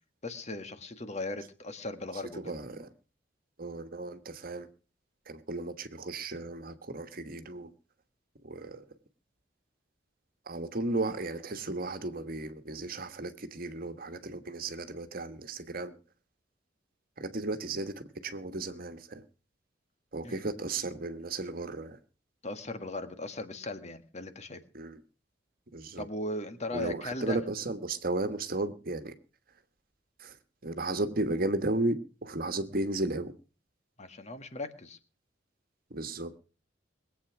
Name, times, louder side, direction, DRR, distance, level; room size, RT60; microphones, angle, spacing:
voice 1, 0.2-2.5 20.2-20.4 22.4-24.6 26.0-27.4 34.0-35.0, left 2 dB, 40° left, 1.7 m, -38 dB
voice 2, 2.3-2.9 3.6-4.7 5.3-7.7 8.4-8.8 10.4-16.0 17.2-19.2 20.1-22.0 24.7-25.0 25.7-26.0 26.7-29.1 30.2-30.4 30.6-32.0 32.2-33.3 35.9-36.4, right 2 dB, 50° right, 1.4 m, -34 dB
21.5 x 8.5 x 6.0 m
head